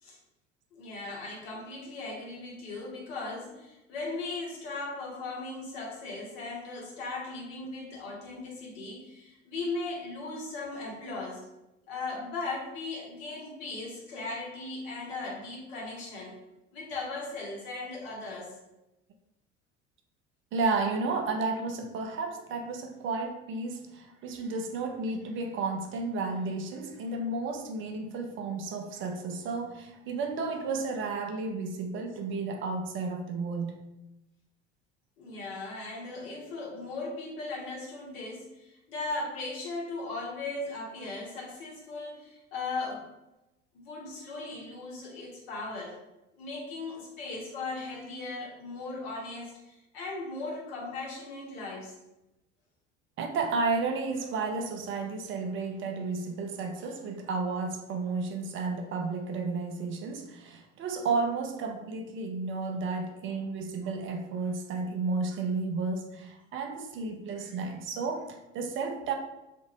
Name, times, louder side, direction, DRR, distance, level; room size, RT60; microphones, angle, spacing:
voice 1, 0.7-11.4 11.9-16.3 16.7-18.5 35.2-43.1 43.7-46.0 46.3-51.9, left 3 dB, 60° left, -2 dB, 1.0 m, -38 dB
voice 2, 20.5-33.9 53.2-69.1, right 4 dB, 35° right, 4 dB, 0.5 m, -32 dB
2.6 x 2.5 x 3.0 m, 0.94 s
figure-of-eight pair, 65°, 35 cm